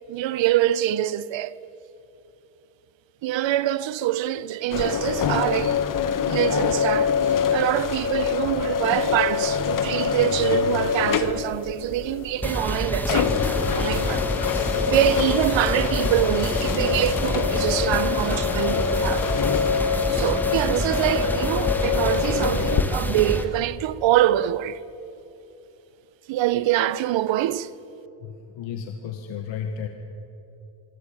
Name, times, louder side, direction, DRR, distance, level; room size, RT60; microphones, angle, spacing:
voice 1, 0.1-1.5 3.2-5.8 6.3-7.2 7.5-14.3 14.6-19.3 19.6-19.7 20.1-24.8 26.3-27.7, right 13 dB, 75° right, 1.0 m, -25 dB
sound 1, 4.7-22.8, left 7 dB, 45° left, 1.4 m, -25 dB
sound 2, 12.4-23.4, equal, 5° left, 1.6 m, -27 dB
voice 2, 28.2-29.9, left 7 dB, 80° left, 1.9 m, -33 dB
25.0 x 24.5 x 8.9 m
cardioid pair, 180°, 45 cm